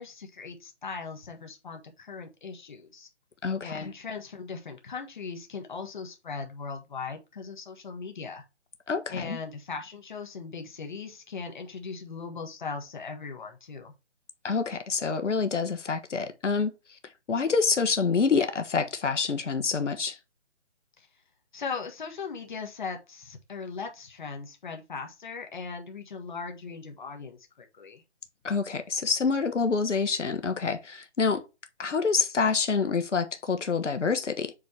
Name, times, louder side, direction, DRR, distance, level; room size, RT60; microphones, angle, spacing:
voice 1, 0.0-3.1 3.6-8.4 9.1-13.9 21.0-21.1 21.5-28.0, left 5 dB, 40° left, 1.5 m, -39 dB
voice 2, 3.4-3.9 8.9-9.4 14.4-17.0 17.3-20.2 28.4-31.4 31.8-34.5, left 5 dB, 90° left, 1.3 m, -27 dB
7.5 x 3.4 x 4.2 m
hypercardioid pair, 170°, 35 cm